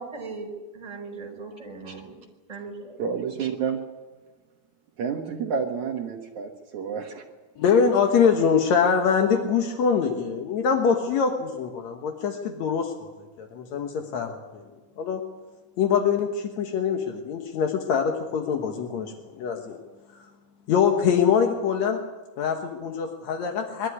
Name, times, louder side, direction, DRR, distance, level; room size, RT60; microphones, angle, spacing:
voice 1, 0.0-2.2 2.5-3.0, right 4 dB, 10° right, 1 dB, 4.7 m, -38 dB
voice 2, 3.0-3.8 5.0-7.2, right 6 dB, 60° right, 2 dB, 2.2 m, -29 dB
voice 3, 7.6-13.1 13.4-14.6 15.0-15.2 15.8-19.8 20.7-22.0 22.4-23.9, left 6 dB, 60° left, 3 dB, 2.0 m, -24 dB
22.5 x 13.0 x 9.6 m, 1.3 s
omnidirectional pair, 4.7 m